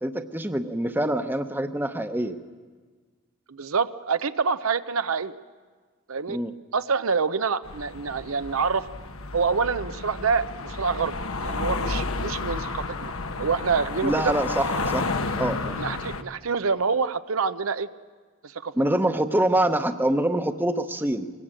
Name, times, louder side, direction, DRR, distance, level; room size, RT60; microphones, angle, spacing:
voice 1, 0.0-2.4 6.3-6.5 14.0-15.1 15.4-16.0 18.8-21.3, right 1 dB, 10° right, 8 dB, 0.9 m, -25 dB
voice 2, 3.5-5.3 6.1-6.4 6.7-8.9 9.3-13.1 13.4-14.3 15.8-17.9 18.4-18.7, right 5 dB, 85° right, 12 dB, 0.8 m, -26 dB
sound 1, 7.6-16.2, left 3 dB, 85° left, 1.3 m, -31 dB
24.0 x 20.0 x 8.9 m, 1.5 s
head